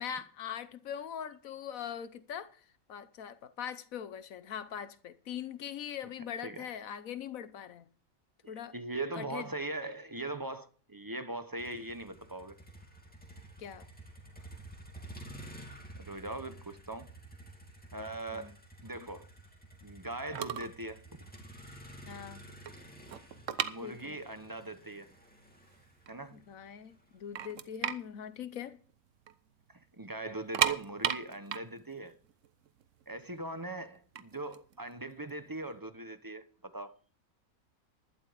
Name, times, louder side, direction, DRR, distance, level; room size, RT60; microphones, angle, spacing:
voice 1, 0.0-2.5 2.9-7.8 8.5-8.7 9.1-9.5 13.6-13.9 18.3-18.5 22.1-22.4 23.8-24.2 26.3-28.8, left 9 dB, 75° left, 1.2 m, -41 dB
voice 2, 8.7-12.5 16.0-17.1 17.9-18.5 18.8-19.3 19.8-21.0 23.6-25.1 26.1-26.4 29.9-32.2 33.1-37.0, right 2 dB, 20° right, 0.8 m, -40 dB
Motor vehicle (road), 11.6-27.7, right 1 dB, 5° left, 2.5 m, -51 dB
sound 1, 20.1-20.2 20.4-20.8 21.1-21.3 21.8-21.9 22.2-24.5 24.7-24.8 25.5-25.6 25.9-26.6 27.0-27.1 27.4-29.3 29.6-29.7 30.3-33.2 34.0-35.7, right 9 dB, 65° right, 1.1 m, -34 dB
12.0 x 11.0 x 5.1 m
omnidirectional pair, 1.5 m